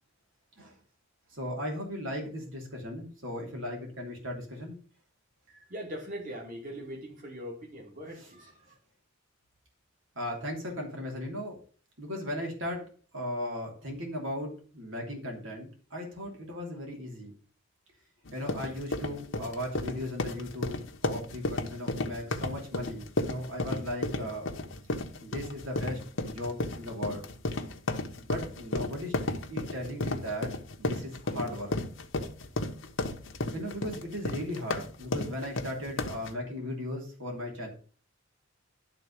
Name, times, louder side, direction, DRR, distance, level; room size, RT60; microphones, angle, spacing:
voice 1, 1.3-4.8 8.1-8.3 10.1-11.6 12.0-17.3 18.3-24.5 25.2-27.2 28.2-29.1 29.5-30.5 30.8-31.7 33.5-37.7, left 1 dB, 75° right, 2.9 m, -37 dB
voice 2, 5.5-8.8, equal, 40° right, 2.7 m, -41 dB
sound 1, 18.3-36.3, left 2 dB, 70° left, 1.1 m, -33 dB
11.5 x 4.0 x 6.6 m
head